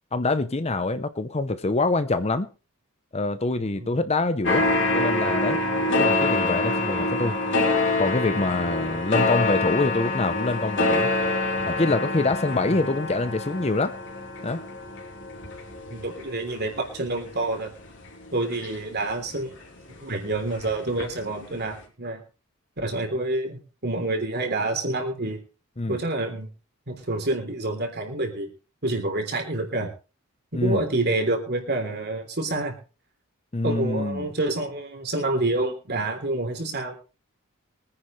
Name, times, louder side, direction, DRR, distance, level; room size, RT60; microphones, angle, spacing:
voice 1, 0.1-2.5 3.1-4.7 4.9-5.6 5.9-7.4 8.0-11.1 11.6-13.9 14.4-14.6 25.8-26.0 30.5-30.8 33.5-34.3, left 2 dB, 30° left, 0.7 m, -25 dB
voice 2, 3.6-3.9 12.7-12.8 15.9-17.7 18.3-19.5 20.0-22.2 22.8-25.4 25.9-26.5 26.9-28.5 28.8-29.9 30.5-32.8 33.6-37.0, right 2 dB, 50° right, 3.4 m, -28 dB
sound 1, 4.4-19.6 19.9-21.3 21.6-21.7, left 2 dB, 55° left, 3.5 m, -26 dB
23.5 x 10.0 x 3.2 m
head